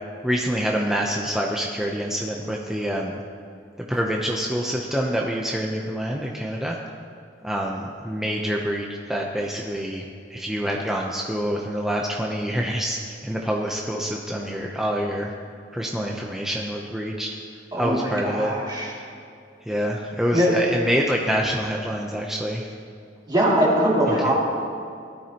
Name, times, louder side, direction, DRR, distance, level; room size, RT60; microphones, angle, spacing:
voice 1, 0.2-3.2 3.9-6.8 7.4-10.1 10.3-15.3 15.7-17.3 17.7-18.5 19.0-19.1 19.7-22.7 24.1-24.3, equal, 5° right, -1 dB, 0.7 m, -26 dB
voice 2, 17.7-18.9 20.3-20.5 23.3-24.3, equal, 25° right, -4 dB, 2.5 m, -21 dB
18.5 x 12.5 x 2.9 m, 2.4 s
head